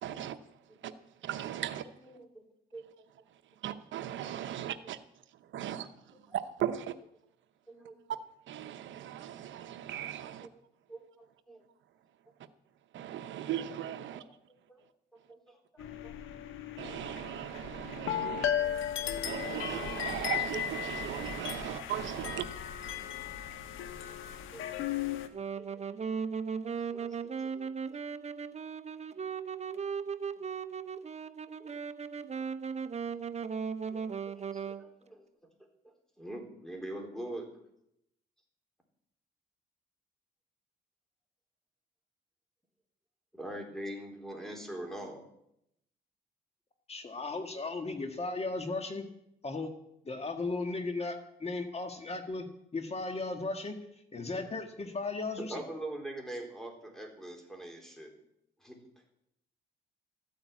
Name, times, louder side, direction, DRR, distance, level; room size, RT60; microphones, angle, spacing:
voice 1, 0.0-0.4 0.8-0.9 1.2-1.8 3.6-5.0 5.5-5.9 6.6-6.9 8.5-10.5 12.9-14.2 16.8-18.5 19.2-22.5, right 11 dB, 70° right, 10 dB, 0.8 m, -37 dB
voice 2, 2.0-2.4 2.7-2.9 5.7-5.8 6.3-6.4 7.7-8.0 10.4-10.6 10.9-11.6 14.0-14.3 14.7-14.8 15.3-16.1 24.3-24.7 25.5-25.7 26.7-27.7 31.6-31.7 33.9-35.2 35.8-37.5 43.3-45.2 54.4-54.5 55.4-58.1 58.6-58.8, right 1 dB, ahead, 2 dB, 4.1 m, -44 dB
sound 1, 15.8-25.3, left 10 dB, 85° left, 1.3 m, -36 dB
Wind instrument woodwind instrument, 25.3-34.9, right 6 dB, 35° right, 0.9 m, -37 dB
voice 3, 46.9-49.0 49.4-49.7 50.0-52.4 52.7-53.7 54.1-55.6, left 3 dB, 30° left, 5 dB, 1.7 m, -36 dB
13.5 x 9.3 x 8.4 m, 0.78 s
cardioid pair, 90°, 20 cm